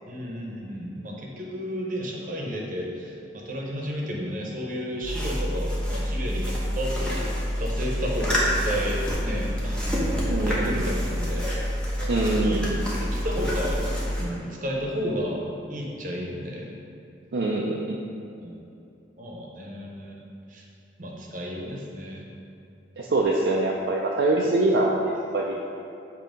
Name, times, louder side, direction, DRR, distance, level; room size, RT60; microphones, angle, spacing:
voice 1, 0.0-3.2 3.4-7.2 7.6-10.2 10.5-11.5 12.0-12.7 13.0-13.8 14.2-15.4 15.7-16.8 18.4-18.6 19.2-20.2 20.5-20.6 21.0-22.2 24.4-24.5, equal, 45° right, -1 dB, 0.9 m, -32 dB
sound 1, 5.0-14.2, equal, 5° left, 0.9 m, -27 dB
voice 2, 10.3-10.7 12.1-12.7 17.3-18.0 23.0-25.6, right 2 dB, 70° right, -2 dB, 0.5 m, -24 dB
7.5 x 2.8 x 5.1 m, 2.7 s
head